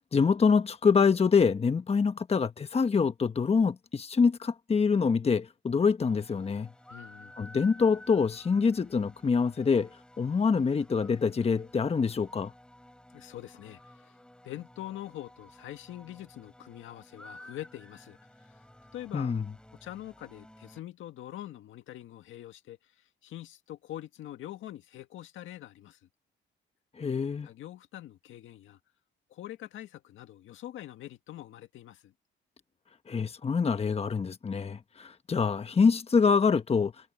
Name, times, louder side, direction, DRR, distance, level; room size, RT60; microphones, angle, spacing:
voice 1, 0.1-6.7 7.4-9.9 10.2-12.5 19.1-19.4 27.0-27.5 33.1-36.9, left 5 dB, 30° left, 1.2 m, -25 dB
sound 1, 6.0-20.8, left 1 dB, 5° left, 4.3 m, -54 dB
voice 2, 6.9-7.3 13.1-14.2 14.4-18.6 18.9-19.4 19.8-22.9 23.2-26.0 27.4-28.8 29.3-32.1, left 13 dB, 80° left, 2.0 m, -44 dB
cardioid pair, 90°, 20 cm